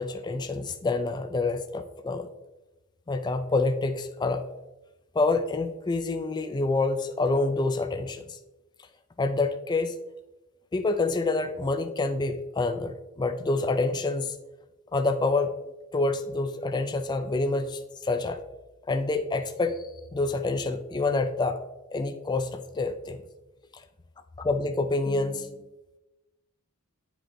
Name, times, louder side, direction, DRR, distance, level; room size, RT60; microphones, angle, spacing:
voice 1, 0.0-2.3 3.1-4.5 5.1-8.4 9.2-9.9 10.7-14.4 14.9-15.5 15.9-18.4 18.9-19.9 20.1-21.6 21.9-23.2 24.4-25.6, left 3 dB, 20° left, 8 dB, 0.3 m, -27 dB
8.1 x 5.0 x 3.0 m, 1.0 s
head